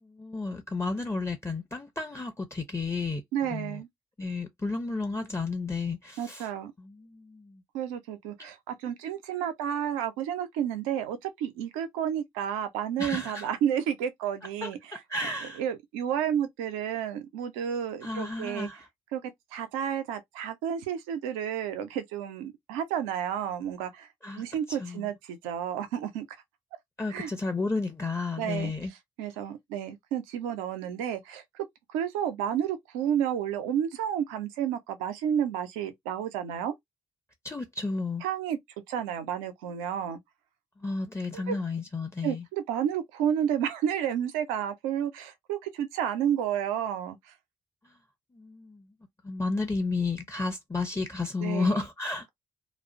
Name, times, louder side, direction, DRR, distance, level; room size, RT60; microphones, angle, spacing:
voice 1, 0.0-3.8 4.2-6.5 6.8-7.6 8.4-8.5 13.0-13.5 14.6-15.6 18.0-18.9 24.2-25.1 27.0-28.9 37.4-38.2 40.8-42.4 47.8-47.9 48.3-48.9 49.2-52.3, left 3 dB, 15° left, 0.6 m, -32 dB
voice 2, 3.3-3.9 6.2-6.7 7.7-15.0 15.6-18.7 19.1-24.1 24.4-26.3 27.1-27.3 28.4-28.7 29.2-36.7 38.2-38.6 38.9-40.2 41.3-41.6 42.2-47.2 51.4-51.8, right 9 dB, 85° right, 0.5 m, -31 dB
2.3 x 2.1 x 2.5 m
hypercardioid pair, 45°, 17 cm